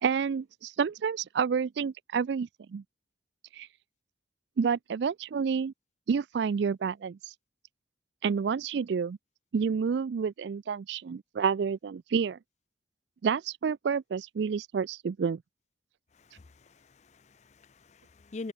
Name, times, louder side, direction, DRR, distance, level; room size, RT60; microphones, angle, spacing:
voice 1, 0.0-2.8 3.5-3.7 4.6-5.7 6.1-7.2 8.2-9.2 9.5-12.4 13.2-15.4, right 6 dB, 60° right, 0.3 m, -29 dB
voice 2, 16.1-18.5, left 3 dB, 35° left, 0.5 m, -45 dB
head